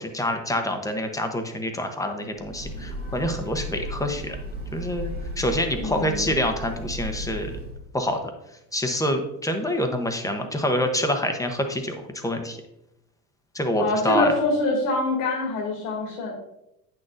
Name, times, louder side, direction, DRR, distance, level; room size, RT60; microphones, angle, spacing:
voice 1, 0.0-4.4 4.7-7.5 7.9-8.2 8.7-12.6 13.5-14.3, left 1 dB, 5° left, 5 dB, 0.8 m, -26 dB
Breathing / Train, 2.4-7.9, equal, 20° right, 1.8 m, -34 dB
voice 2, 5.8-6.3 13.8-16.3, left 2 dB, 85° left, -3 dB, 2.2 m, -25 dB
8.4 x 6.4 x 2.5 m, 0.85 s
supercardioid pair, 110°, 45 cm